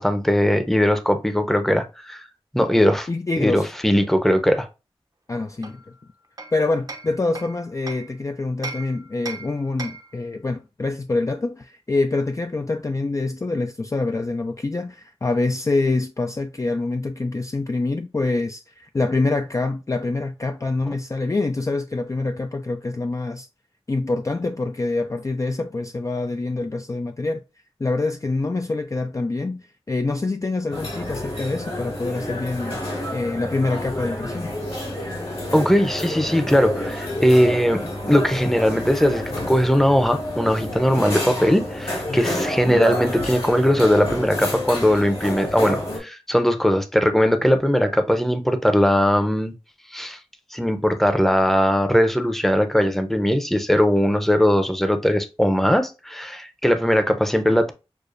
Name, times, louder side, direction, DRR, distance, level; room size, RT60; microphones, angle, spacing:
voice 1, 0.0-2.2 2.5-3.1 3.4-4.7 35.5-49.5 49.9-50.2 50.5-57.7, equal, 5° left, 0.6 m, -19 dB
voice 2, 3.1-3.7 5.3-5.8 6.5-23.5 23.9-27.4 27.8-32.8 33.1-34.6 42.1-42.2, left 3 dB, 30° left, 0.3 m, -25 dB
Hammer, 5.6-8.1 8.6-10.2, right 3 dB, 35° right, 0.6 m, -37 dB
sound 1, 30.7-46.0, left 1 dB, 65° left, 2.0 m, -29 dB
6.6 x 2.3 x 2.5 m
wide cardioid pair, 50°, 10 cm